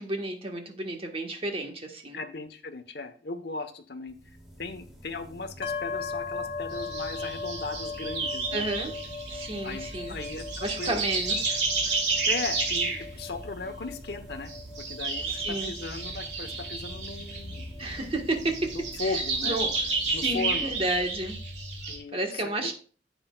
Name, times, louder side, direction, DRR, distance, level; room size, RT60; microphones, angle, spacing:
voice 1, 0.0-2.2 8.5-8.9 9.3-10.1 10.6-12.0 15.3-15.7 17.8-18.7 19.0-19.7 20.0-21.4 22.1-22.7, right 2 dB, 35° right, 3 dB, 1.6 m, -32 dB
voice 2, 2.1-8.7 9.6-11.0 12.3-18.0 18.4-19.7 20.1-20.7 21.9-22.7, left 3 dB, 65° left, 7 dB, 1.1 m, -37 dB
sound 1, 4.1-21.6, equal, ahead, 2.8 m, -49 dB
sound 2, 5.6-19.3, left 5 dB, 30° left, 0.8 m, -39 dB
sound 3, 6.7-22.0, right 4 dB, 70° right, 3.2 m, -32 dB
10.5 x 7.9 x 2.4 m, 0.41 s
head